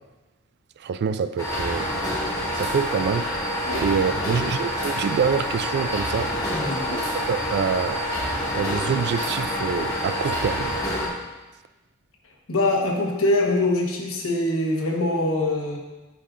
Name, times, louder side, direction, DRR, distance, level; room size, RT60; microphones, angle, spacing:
voice 1, 0.8-1.9 2.5-3.3 3.8-6.3 7.1-8.0 8.5-10.8, right 6 dB, 55° right, 13 dB, 0.3 m, -26 dB
sound 1, 1.4-11.1, equal, 15° left, 1.7 m, -27 dB
voice 2, 6.5-7.0 12.5-15.8, left 2 dB, 75° left, -1 dB, 1.2 m, -23 dB
9.6 x 5.2 x 2.5 m, 1.1 s
head